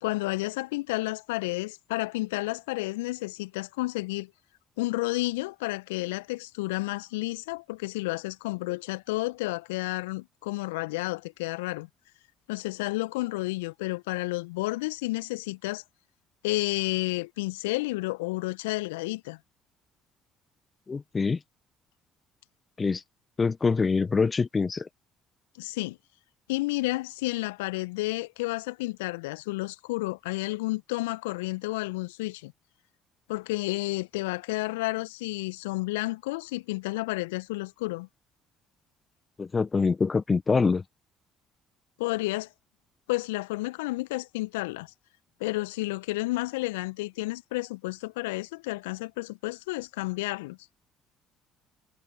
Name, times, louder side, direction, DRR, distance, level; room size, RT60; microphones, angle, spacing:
voice 1, 0.0-4.3 4.8-11.9 12.5-15.8 16.4-19.4 25.6-26.0 26.5-32.5 33.3-38.1 42.0-42.5 43.1-44.9 45.4-50.6, left 21 dB, 75° left, 1.3 m, -31 dB
voice 2, 20.9-21.4 22.8-23.0 23.4-24.9 39.4-40.8, left 4 dB, 30° left, 1.3 m, -25 dB
figure-of-eight pair, 50°, 0 cm